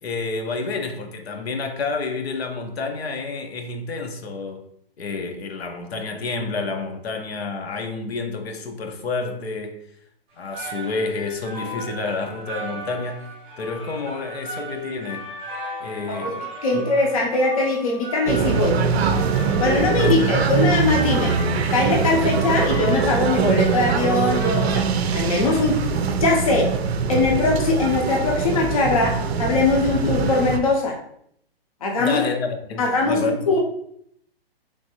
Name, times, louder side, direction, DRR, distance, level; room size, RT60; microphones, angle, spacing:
voice 1, 0.0-4.7 5.0-9.8 10.4-15.2 15.8-16.4 16.7-16.9 20.0-20.7 32.0-33.6, left 4 dB, 80° left, 0.7 m, -29 dB
sound 1, 10.3-26.2, right 1 dB, 5° right, 0.6 m, -36 dB
voice 2, 16.6-18.7 19.6-21.4 21.7-24.8 25.1-25.8 26.2-26.7 27.1-31.0 31.8-32.2 32.8-33.6, left 3 dB, 35° left, 0.5 m, -21 dB
sound 2, 18.3-30.6, right 5 dB, 90° right, 0.5 m, -22 dB
3.3 x 2.5 x 2.8 m
hypercardioid pair, 170°, 31 cm